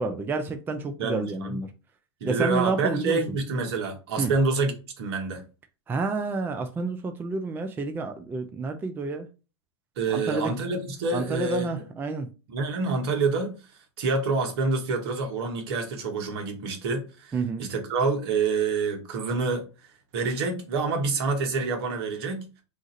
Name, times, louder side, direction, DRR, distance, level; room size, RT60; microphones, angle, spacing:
voice 1, 0.0-1.7 2.3-3.2 4.2-4.3 5.9-9.3 10.1-10.5 11.1-12.3 17.3-17.7, right 3 dB, 15° right, 0.4 m, -29 dB
voice 2, 1.0-1.6 2.2-5.4 10.0-11.7 12.5-13.6 14.0-19.7 20.1-22.5, right 4 dB, 65° right, 1.0 m, -27 dB
2.6 x 2.4 x 4.0 m
hypercardioid pair, 110°, 14 cm